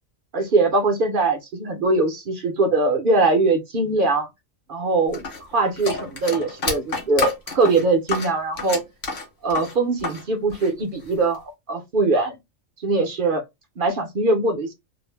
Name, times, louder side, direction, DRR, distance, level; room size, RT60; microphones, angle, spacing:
voice 1, 0.3-4.3 4.7-5.2 5.5-8.8 9.4-12.4 12.8-13.4 13.8-14.7, right 3 dB, 55° right, 0.6 m, -21 dB
sound 1, 5.1-10.2 10.5-11.4, left 3 dB, 50° left, 1.0 m, -29 dB
2.5 x 2.0 x 3.1 m
omnidirectional pair, 1.4 m